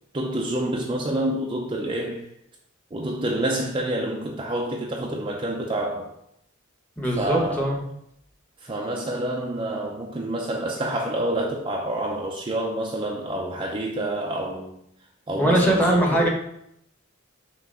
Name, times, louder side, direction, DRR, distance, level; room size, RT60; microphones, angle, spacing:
voice 1, 0.1-2.3 2.9-6.1 7.2-7.7 8.6-14.7 15.3-16.3, right 1 dB, 25° right, 0.5 m, -28 dB
voice 2, 7.0-7.8 15.4-16.3, right 1 dB, 10° left, 1.2 m, -21 dB
5.9 x 3.0 x 5.4 m
head